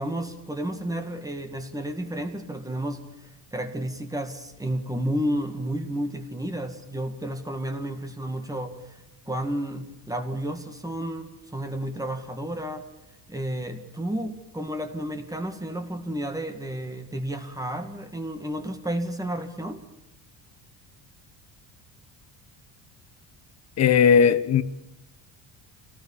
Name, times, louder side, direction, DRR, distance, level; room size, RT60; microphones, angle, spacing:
voice 1, 0.0-3.0 3.5-9.0 9.3-12.9 13.3-19.8, right 1 dB, 10° right, 2.1 m, -31 dB
voice 2, 23.8-24.6, left 7 dB, 40° left, 1.4 m, -17 dB
26.0 x 18.5 x 7.3 m
cardioid pair, 145°, 40 cm